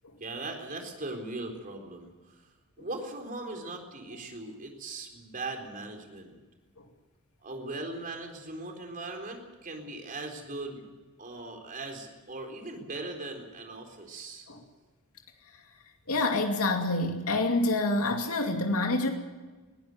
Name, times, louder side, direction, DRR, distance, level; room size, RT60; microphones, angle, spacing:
voice 1, 0.2-2.4 2.8-6.4 7.4-10.9 11.2-14.5, right 2 dB, 40° right, 3 dB, 4.0 m, -39 dB
voice 2, 16.1-19.1, left 2 dB, 80° left, 3 dB, 2.5 m, -27 dB
21.0 x 16.5 x 8.0 m, 1.3 s
head